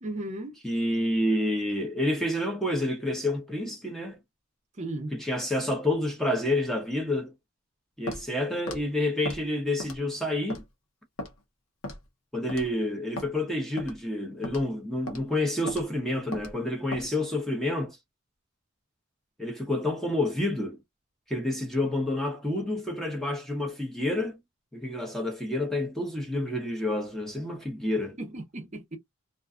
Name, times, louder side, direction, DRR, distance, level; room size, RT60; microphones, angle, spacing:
voice 1, 0.0-0.5 4.8-5.2 28.2-29.0, right 1 dB, 35° right, 0.6 m, -36 dB
voice 2, 0.6-4.2 5.1-7.3 8.0-10.6 12.3-18.0 19.4-20.8 21.3-24.4 24.7-28.2, left 1 dB, ahead, 0.7 m, -29 dB
Walk footsteps, 8.1-8.3 8.7-8.8 9.3-9.4 9.8-10.1 10.5-10.6 11.2-11.3 11.8-12.1 12.5-12.7 13.2-13.3 13.8-14.0 14.4-14.7 15.1-15.2 15.7-15.9 16.3-16.5 16.9-17.1, left 1 dB, 85° left, 0.8 m, -36 dB
2.4 x 2.2 x 2.4 m
head